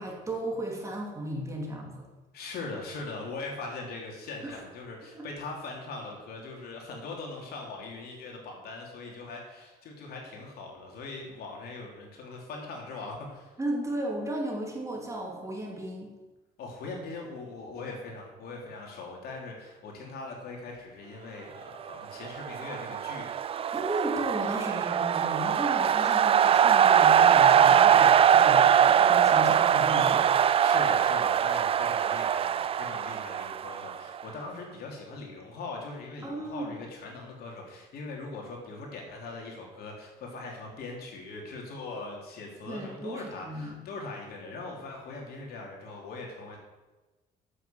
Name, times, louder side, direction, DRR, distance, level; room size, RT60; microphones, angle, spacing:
voice 1, 0.0-2.1 4.5-4.6 5.1-5.3 13.6-16.1 23.7-30.3 36.2-36.8 42.7-43.8, right 1 dB, 15° right, -1 dB, 2.9 m, -35 dB
voice 2, 2.3-13.5 16.6-23.6 30.6-46.6, left 3 dB, 65° left, 0 dB, 3.3 m, -41 dB
sound 1, 22.3-34.2, right 9 dB, 35° right, 0.4 m, -22 dB
8.9 x 7.7 x 7.8 m, 1.2 s
cardioid pair, 110°, 17 cm